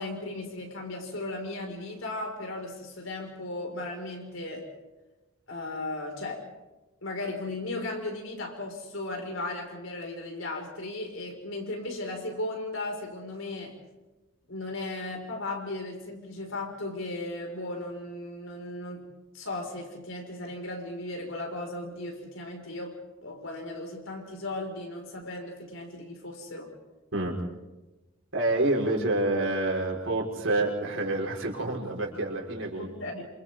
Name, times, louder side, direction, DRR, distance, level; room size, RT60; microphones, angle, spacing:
voice 1, 0.0-4.7 5.5-6.5 7.0-13.8 14.5-19.0 19.3-22.9 23.2-26.7 32.8-33.2, left 2 dB, 70° left, 1 dB, 6.0 m, -36 dB
voice 2, 28.3-32.9, right 2 dB, 65° right, 0 dB, 5.4 m, -28 dB
29.5 x 28.0 x 4.0 m, 1.1 s
head